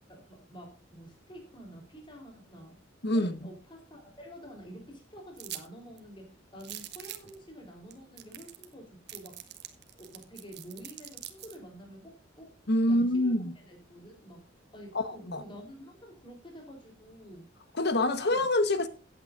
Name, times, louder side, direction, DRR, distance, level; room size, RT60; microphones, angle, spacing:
voice 1, 0.1-2.8 3.1-9.4 10.0-12.5 12.8-13.3 13.6-14.5 14.7-17.5 18.1-18.5, equal, 25° left, 3.9 m, -49 dB
voice 2, 3.0-3.4 12.7-13.5 14.9-15.4 17.8-18.9, left 1 dB, 55° left, 1.3 m, -26 dB
sound 1, 5.4-5.7 6.0-6.1 6.6-7.3 7.9-8.0 8.2-8.7 9.1-11.6, right 13 dB, 55° right, 1.5 m, -43 dB
16.5 x 8.9 x 2.6 m
head